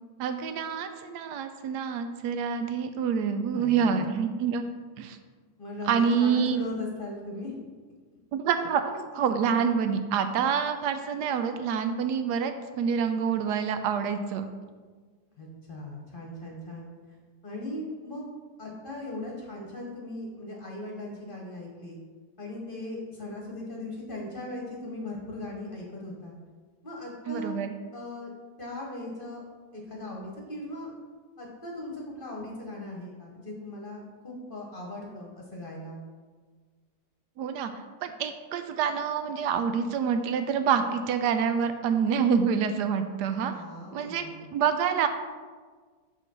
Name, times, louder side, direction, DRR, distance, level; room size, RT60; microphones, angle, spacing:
voice 1, 0.2-4.6 5.0-5.2 5.8-6.6 8.3-14.5 27.3-27.8 37.4-37.7 38.0-43.5 43.9-44.2 44.5-45.1, right 7 dB, 80° right, 8 dB, 1.2 m, -27 dB
voice 2, 3.5-4.2 5.6-7.5 15.4-16.9 17.4-18.2 18.6-22.0 22.4-26.3 26.8-27.5 27.9-28.3 28.6-29.4 29.7-30.9 31.4-36.0 43.5-44.4, left 1 dB, 35° left, -2 dB, 1.1 m, -38 dB
5.6 x 3.9 x 6.0 m, 1.5 s
omnidirectional pair, 1.8 m